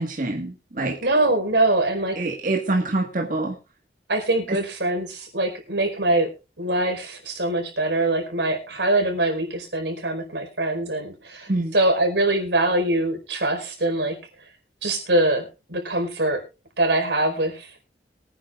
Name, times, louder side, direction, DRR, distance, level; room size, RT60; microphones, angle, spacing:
voice 1, 0.0-1.0 2.1-3.5 4.5-4.6 11.5-11.7, right 2 dB, 50° right, 2 dB, 1.7 m, -25 dB
voice 2, 1.0-2.2 4.1-6.3 6.6-14.1 14.8-16.4 16.8-17.7, right 2 dB, 90° right, 3 dB, 4.7 m, -23 dB
23.0 x 10.0 x 2.5 m, 0.29 s
head